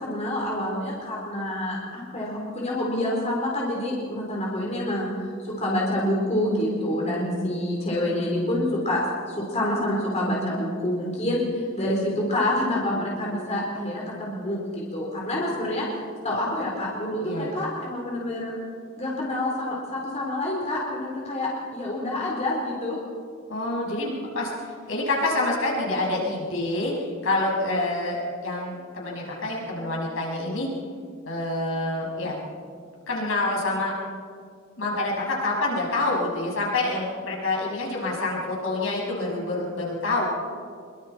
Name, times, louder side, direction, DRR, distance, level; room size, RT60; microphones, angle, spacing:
voice 1, 0.0-9.0 9.3-15.8 16.2-18.6 19.0-23.0, left 1 dB, 35° left, -4 dB, 4.4 m, -27 dB
voice 2, 23.5-26.9 27.2-30.7 31.3-32.4 33.1-33.9 34.8-40.3, left 2 dB, 70° left, -3 dB, 6.4 m, -27 dB
24.5 x 24.0 x 4.6 m, 2.2 s
head